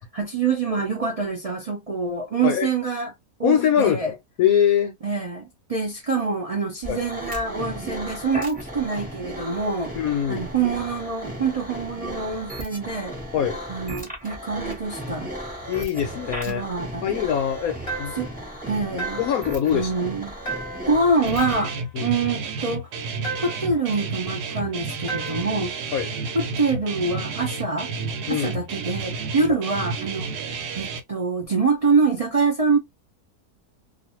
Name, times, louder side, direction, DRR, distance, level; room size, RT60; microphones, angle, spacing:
voice 1, 0.1-3.1 3.4-4.1 5.0-10.0 10.3-13.2 13.7-15.3 16.5-17.1 18.2-18.3 18.6-19.2 19.7-20.3 20.9-21.7 22.0-22.9 23.4-25.7 26.3-27.9 28.3-30.3 30.7-32.8, right 4 dB, 65° right, 0.3 m, -25 dB
voice 2, 3.4-4.9 6.9-7.0 10.0-10.4 13.3-13.6 15.7-16.6 17.0-18.1 19.2-20.1 21.9-22.1 25.9-26.1 28.3-28.5, left 9 dB, 70° left, 1.0 m, -23 dB
sound 1, 6.8-21.6, right 1 dB, 5° right, 0.8 m, -35 dB
sound 2, 17.9-18.4 19.0-19.5 20.5-21.0 21.4-21.9 23.2-23.8 25.1-25.6, right 3 dB, 35° left, 0.6 m, -33 dB
Guitar, 21.2-31.0, right 4 dB, 85° right, 1.2 m, -31 dB
2.5 x 2.5 x 2.8 m
omnidirectional pair, 1.7 m